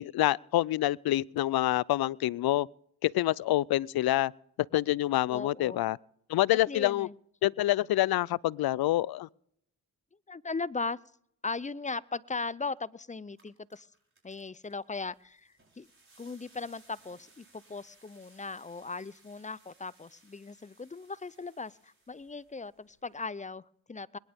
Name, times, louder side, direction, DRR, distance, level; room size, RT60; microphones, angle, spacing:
voice 1, 0.0-2.7 3.0-4.3 4.7-6.0 6.3-7.1 7.4-9.3, left 15 dB, 65° left, 0.5 m, -27 dB
voice 2, 5.3-5.8 6.7-7.2 10.3-11.0 11.4-13.9 14.2-15.9 16.2-24.2, left 4 dB, 20° left, 0.5 m, -38 dB
sound 1, 12.8-12.9 13.2-23.3, right 2 dB, 30° right, 6.6 m, -63 dB
21.5 x 11.0 x 3.6 m
supercardioid pair, 50°, 40 cm